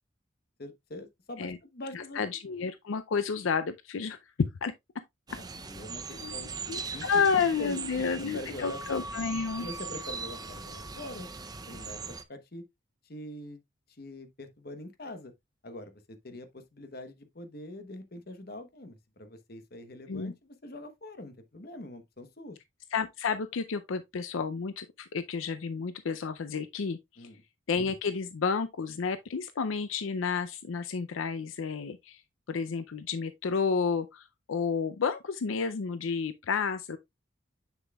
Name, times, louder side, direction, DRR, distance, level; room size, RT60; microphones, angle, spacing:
voice 1, 0.6-2.2 5.3-7.0 7.6-7.8 8.0-8.8 9.6-11.3 11.7-12.6 13.0-13.6 13.9-15.3 15.6-22.6 27.2-27.4, left 1 dB, 50° left, 1.0 m, -44 dB
voice 2, 1.9-4.2 4.6-4.7 6.2-6.3 6.7-9.7 20.1-20.3 22.9-27.3 27.7-32.2 32.5-37.0, left 5 dB, 80° left, 0.5 m, -31 dB
sound 1, 5.3-12.2, right 4 dB, 20° right, 0.5 m, -40 dB
7.2 x 6.7 x 2.3 m
head